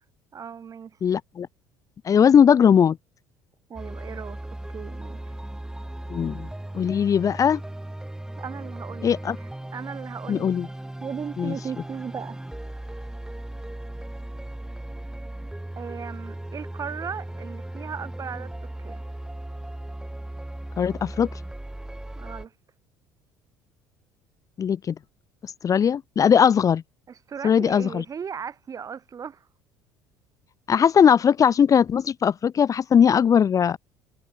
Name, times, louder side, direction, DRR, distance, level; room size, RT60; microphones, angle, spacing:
voice 1, 0.3-1.0 3.7-4.4 4.7-5.3 8.4-10.5 11.0-12.4 15.8-18.5 18.8-19.0 22.2-22.5 27.1-29.5, right 7 dB, 35° right, 2.5 m, -37 dB
voice 2, 1.0-1.5 2.0-3.0 6.1-6.5 6.7-7.6 9.0-9.4 10.3-10.7 11.4-11.5 20.8-21.3 24.6-24.9 25.4-26.8 27.4-28.0 30.7-33.8, left 7 dB, 35° left, 0.8 m, -19 dB
sound 1, 3.8-22.5, right 1 dB, 5° right, 1.8 m, -37 dB
figure-of-eight pair, 60°, 10 cm